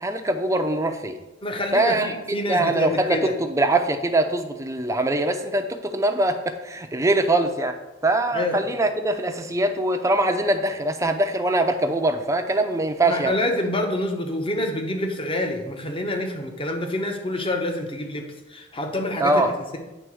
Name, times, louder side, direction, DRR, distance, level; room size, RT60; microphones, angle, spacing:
voice 1, 0.0-1.2 1.7-13.3 19.2-19.5, right 2 dB, 15° right, 6 dB, 0.7 m, -23 dB
voice 2, 1.4-3.3 8.3-8.7 13.1-19.8, left 1 dB, 30° left, 4 dB, 1.0 m, -27 dB
9.2 x 3.8 x 6.2 m, 1.1 s
head